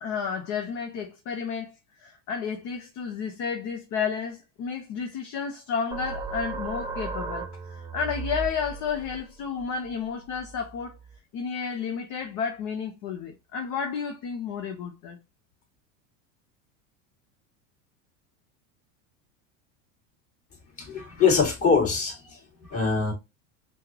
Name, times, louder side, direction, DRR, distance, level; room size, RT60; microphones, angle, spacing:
voice 1, 0.0-1.7 2.0-10.9 11.3-15.2, left 6 dB, 50° left, 0.9 m, -32 dB
sound 1, 5.9-11.2, right 4 dB, 10° right, 0.5 m, -37 dB
voice 2, 20.8-23.1, left 5 dB, 35° left, 2.2 m, -24 dB
5.5 x 2.1 x 2.8 m
hypercardioid pair, 95°, 40 cm